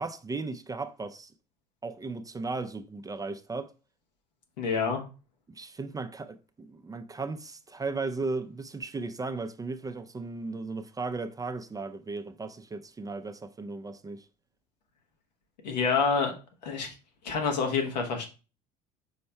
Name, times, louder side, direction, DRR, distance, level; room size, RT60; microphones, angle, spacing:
voice 1, 0.0-1.3 1.8-3.7 5.5-14.3, right 3 dB, 15° right, 0.4 m, -36 dB
voice 2, 4.6-5.0 15.6-16.3 16.6-16.9 17.2-18.3, left 5 dB, 85° left, 1.1 m, -27 dB
5.5 x 4.2 x 2.2 m
hypercardioid pair, 70°, 21 cm